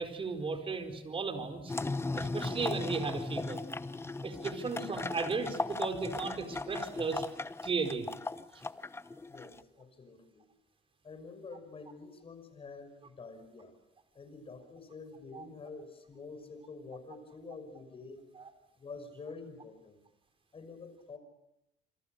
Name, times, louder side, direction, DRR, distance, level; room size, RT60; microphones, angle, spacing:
voice 1, 0.0-1.7 2.2-3.6 4.2-7.2 7.6-8.1 15.3-15.4, right 4 dB, 30° right, 7 dB, 4.5 m, -35 dB
sound 1, 1.7-9.6, left 3 dB, 15° left, 0.9 m, -37 dB
voice 2, 9.3-10.4 11.0-13.7 14.1-18.2 18.8-20.0 20.5-21.2, left 4 dB, 35° left, 10 dB, 5.9 m, -48 dB
27.5 x 26.5 x 6.7 m, 0.83 s
cardioid pair, 110°, 17 cm